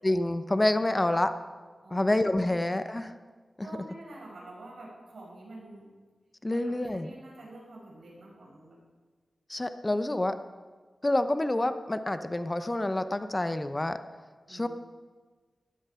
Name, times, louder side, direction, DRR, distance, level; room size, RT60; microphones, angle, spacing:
voice 1, 0.0-1.3 1.9-3.1 3.6-3.7 6.4-7.1 9.5-10.3 11.0-14.0 14.5-14.7, left 1 dB, 25° left, 10 dB, 0.8 m, -27 dB
voice 2, 1.8-2.6 3.6-5.9 6.5-8.8 14.5-14.7, right 2 dB, 75° right, -3 dB, 5.9 m, -47 dB
16.0 x 13.0 x 5.7 m, 1.4 s
wide cardioid pair, 75°, 0 cm